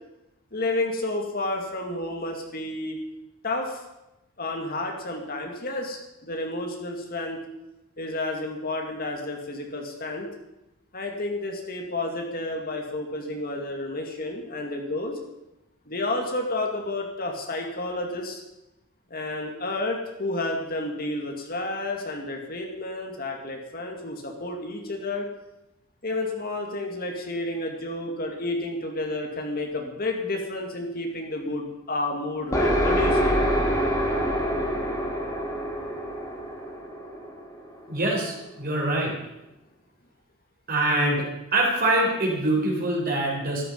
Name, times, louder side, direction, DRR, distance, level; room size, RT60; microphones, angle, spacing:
voice 1, 0.5-3.0 3.4-3.8 4.4-7.4 8.0-10.3 10.9-15.2 15.9-18.4 19.1-25.3 26.0-33.4, left 2 dB, 45° left, 2 dB, 2.2 m, -31 dB
sound 1, 32.5-38.1, equal, 15° left, 2.4 m, -26 dB
voice 2, 37.9-39.1 40.7-41.2 41.5-43.6, right 2 dB, 45° right, -1 dB, 4.3 m, -24 dB
13.5 x 13.0 x 5.4 m, 0.92 s
head